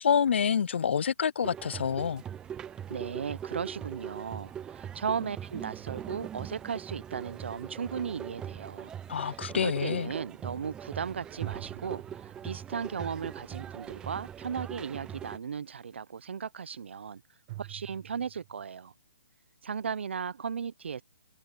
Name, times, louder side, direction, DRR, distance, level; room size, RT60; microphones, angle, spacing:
voice 1, 0.0-2.2 9.1-10.1, left 7 dB, 65° left, 0.5 m, -27 dB
sound 1, 1.4-15.4, right 9 dB, 10° right, 0.7 m, -41 dB
voice 2, 2.9-8.9 9.2-17.2 17.6-18.9 19.6-21.0, right 6 dB, 70° right, 0.9 m, -36 dB
sound 2, 5.7-6.8 11.4-13.0 17.5-18.6, right 18 dB, 30° right, 1.6 m, -46 dB
hypercardioid pair, 145°, 7 cm